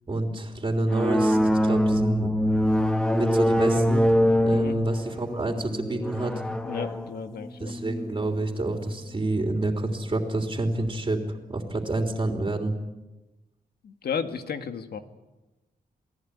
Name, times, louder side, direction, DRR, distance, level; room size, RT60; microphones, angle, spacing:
voice 1, 0.1-2.3 3.1-4.1 4.4-6.3 7.6-12.7, right 2 dB, 30° right, 3 dB, 3.4 m, -28 dB
sound 1, 0.9-9.0, equal, 5° left, 1.3 m, -24 dB
voice 2, 6.6-7.7 13.8-15.0, left 6 dB, 90° left, 8 dB, 2.1 m, -33 dB
28.5 x 19.0 x 9.7 m, 1.1 s
wide cardioid pair, 125°, 16 cm